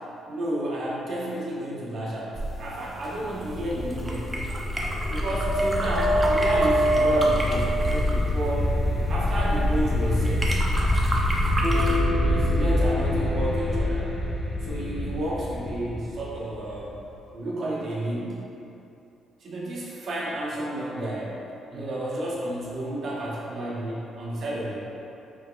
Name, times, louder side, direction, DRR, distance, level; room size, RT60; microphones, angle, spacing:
voice 1, 0.3-4.3 5.1-8.8 9.1-10.6 11.7-14.1 14.6-17.0 17.3-18.4 19.4-21.4 21.7-24.8, right 1 dB, 60° right, -5 dB, 0.8 m, -31 dB
sound 1, 2.3-12.0, right 1 dB, 20° right, 0.5 m, -33 dB
sound 2, 3.3-17.0, equal, 40° left, 0.7 m, -25 dB
4.7 x 3.5 x 2.2 m, 2.8 s
cardioid pair, 90°, 0 cm